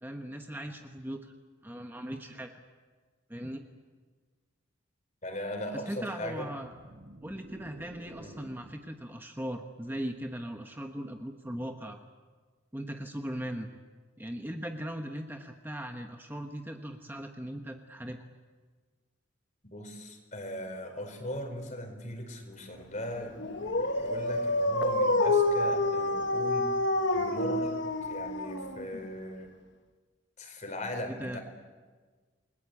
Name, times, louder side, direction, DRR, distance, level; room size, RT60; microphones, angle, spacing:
voice 1, 0.0-1.3 1.6-2.5 3.3-3.6 5.7-6.7 7.2-12.0 12.7-13.7 14.2-18.2 31.2-31.4, equal, 10° right, 4 dB, 1.2 m, -39 dB
voice 2, 5.2-6.5 8.2-8.3 19.6-26.7 27.1-29.6 30.4-31.4, left 1 dB, 40° left, 5 dB, 4.5 m, -39 dB
sound 1, 6.4-8.9, right 1 dB, 55° right, 5.1 m, -50 dB
Dog, 23.4-29.1, left 2 dB, 60° left, 1.5 m, -28 dB
29.0 x 21.0 x 8.5 m, 1.4 s
head